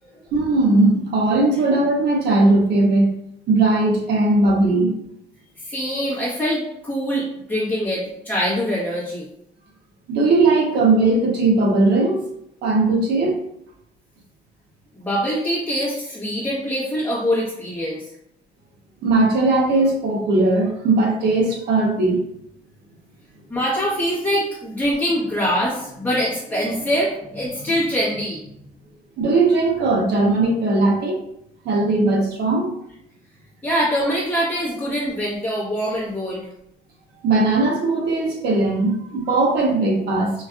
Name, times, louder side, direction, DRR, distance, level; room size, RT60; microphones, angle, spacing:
voice 1, 0.3-3.1 3.5-5.0 10.1-12.3 12.6-13.4 19.0-22.2 29.2-31.2 31.6-32.8 37.2-40.3, right 2 dB, 70° right, -1 dB, 1.2 m, -18 dB
voice 2, 5.6-9.3 14.9-18.0 23.5-28.4 33.6-36.5, equal, 10° left, -9 dB, 1.1 m, -24 dB
4.5 x 2.6 x 2.4 m, 0.76 s
cardioid pair, 125°, 18 cm